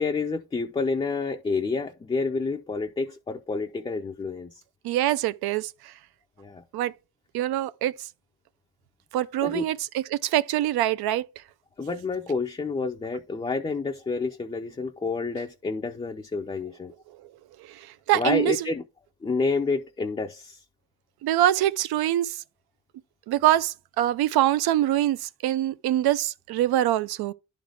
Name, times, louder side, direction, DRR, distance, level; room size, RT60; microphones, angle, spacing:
voice 1, 0.0-4.5 6.4-6.6 9.4-9.6 11.8-16.9 18.1-18.8 19.2-20.6, left 4 dB, 15° left, 0.4 m, -29 dB
voice 2, 4.8-5.9 6.7-6.9 7.3-7.9 9.1-11.3 17.8-18.6 21.2-22.4 23.3-27.3, right 13 dB, 85° right, 0.6 m, -24 dB
11.0 x 3.9 x 3.4 m
cardioid pair, 145°, 37 cm